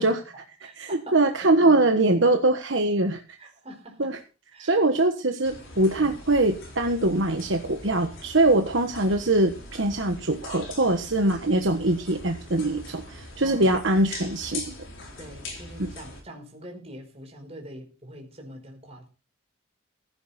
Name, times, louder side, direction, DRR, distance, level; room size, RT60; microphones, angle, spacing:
voice 1, 0.0-1.2 1.6-1.8 2.1-2.4 3.4-4.1 4.5-4.8 6.0-6.2 8.5-8.7 13.4-13.7 15.2-19.1, equal, 30° right, 2 dB, 4.9 m, -44 dB
voice 2, 0.8-3.2 4.0-4.2 4.6-14.7 15.8-15.9, right 2 dB, 60° right, 5 dB, 1.3 m, -23 dB
sound 1, 5.4-16.2, left 2 dB, 70° left, 4.5 m, -42 dB
15.5 x 9.5 x 4.2 m, 0.35 s
head